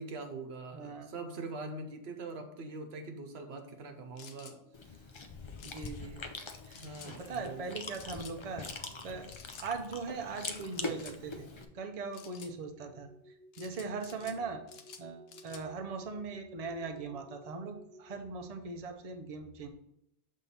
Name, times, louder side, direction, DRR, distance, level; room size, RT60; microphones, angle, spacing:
voice 1, 0.0-4.6 4.8-5.0 6.8-7.6, right 3 dB, 80° right, 5 dB, 1.1 m, -43 dB
voice 2, 0.7-1.1 5.6-6.3 6.6-8.7 9.0-9.3 9.6-11.5 11.7-14.6 15.0-19.7, right 4 dB, 40° right, 5 dB, 0.6 m, -40 dB
sound 1, 4.2-4.6 5.6-5.9 6.7-7.1 7.9-8.4 9.3-9.7 10.7-11.2 12.1-12.5 13.5-14.4 14.7-15.6, left 6 dB, 75° left, 0.9 m, -52 dB
Chewing mastication, 4.7-11.6, left 3 dB, 40° left, 0.4 m, -43 dB
sound 2, 11.1-18.4, equal, 10° left, 1.2 m, -59 dB
6.9 x 3.6 x 4.2 m, 0.81 s
omnidirectional pair, 1.1 m